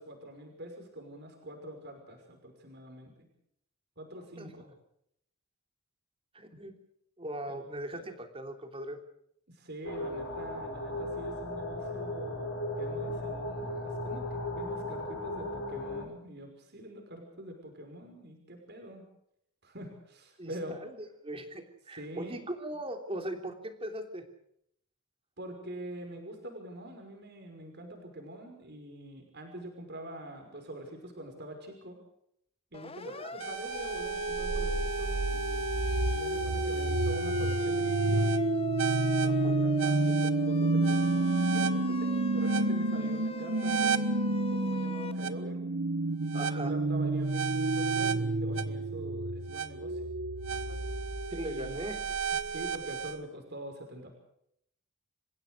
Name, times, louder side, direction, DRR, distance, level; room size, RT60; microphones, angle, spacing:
voice 1, 0.0-3.3 4.0-4.7 7.5-7.6 7.9-8.0 9.5-19.0 19.6-20.8 21.9-22.4 25.4-32.0 32.7-35.9 36.1-38.3 39.2-45.6 46.2-50.1 51.4-51.8 52.4-54.2, right 1 dB, 50° right, 4 dB, 5.7 m, -45 dB
voice 2, 6.3-6.7 7.2-9.0 20.4-24.2 33.0-33.4 39.2-39.6 46.3-46.7 50.7-50.8 51.3-52.1, right 1 dB, 25° right, 5 dB, 3.2 m, -39 dB
sound 1, 9.8-16.0, left 1 dB, 60° left, 6.6 m, -36 dB
Siren, 32.7-45.1, left 3 dB, 25° left, 1.1 m, -41 dB
sound 2, 33.4-53.2, right 3 dB, 70° right, 1.1 m, -29 dB
28.0 x 16.0 x 6.5 m, 0.73 s
head